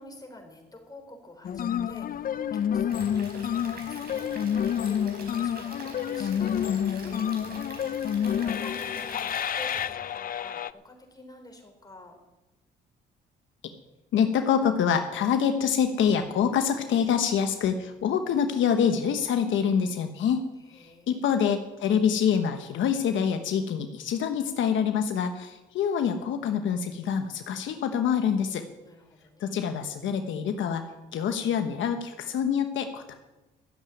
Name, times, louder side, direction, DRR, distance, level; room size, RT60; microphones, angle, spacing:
voice 1, 0.0-12.2 20.6-21.6 28.8-29.8, left 2 dB, 20° left, 3 dB, 3.9 m, -49 dB
sound 1, 1.4-10.7, left 9 dB, 45° left, 0.5 m, -29 dB
Stream / Liquid, 2.9-9.9, right 3 dB, 50° right, 4.6 m, -45 dB
voice 2, 14.1-20.4 20.7-28.6 29.4-30.9 31.1-33.1, left 7 dB, 75° left, 6 dB, 1.2 m, -26 dB
13.5 x 7.7 x 9.2 m, 1.1 s
cardioid pair, 90°, 20 cm